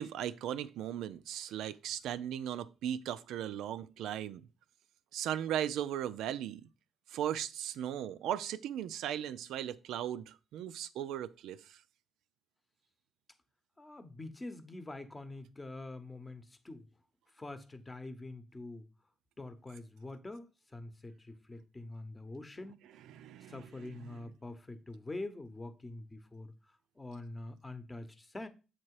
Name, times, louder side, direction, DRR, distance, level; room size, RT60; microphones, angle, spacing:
voice 1, 0.0-4.5 5.1-6.6 7.1-11.8 23.1-23.6 24.0-24.1, right 10 dB, 85° right, 0.4 m, -37 dB
voice 2, 13.8-16.9 17.3-18.9 19.4-22.8 23.5-26.5 27.0-28.5, left 2 dB, 20° left, 0.8 m, -45 dB
7.5 x 2.9 x 4.7 m
cardioid pair, 90°, 0 cm